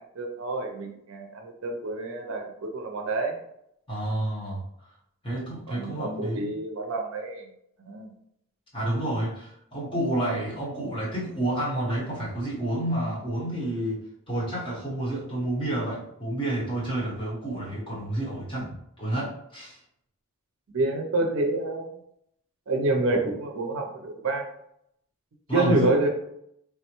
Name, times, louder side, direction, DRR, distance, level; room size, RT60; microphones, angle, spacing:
voice 1, 0.0-3.4 5.7-7.5 7.9-8.1 20.7-21.9 22.7-24.4 25.5-26.1, right 2 dB, 65° right, 3 dB, 0.5 m, -28 dB
voice 2, 3.9-4.6 5.2-6.5 8.7-18.7 19.0-19.8 25.5-26.0, right 1 dB, 25° left, -7 dB, 1.1 m, -29 dB
3.4 x 2.1 x 2.9 m, 0.75 s
head